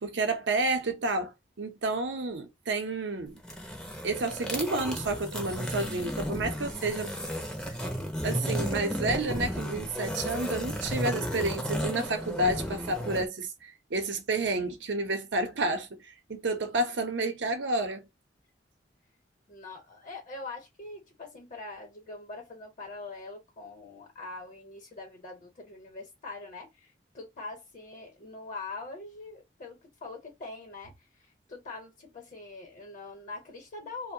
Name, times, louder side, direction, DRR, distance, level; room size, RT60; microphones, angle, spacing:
voice 1, 0.0-3.4 4.0-7.1 8.2-18.1, right 2 dB, 75° right, 0.7 m, -30 dB
sound 1, 3.4-13.3, equal, 5° left, 0.6 m, -33 dB
voice 2, 19.5-34.1, left 3 dB, 45° left, 0.9 m, -43 dB
2.6 x 2.1 x 2.6 m
head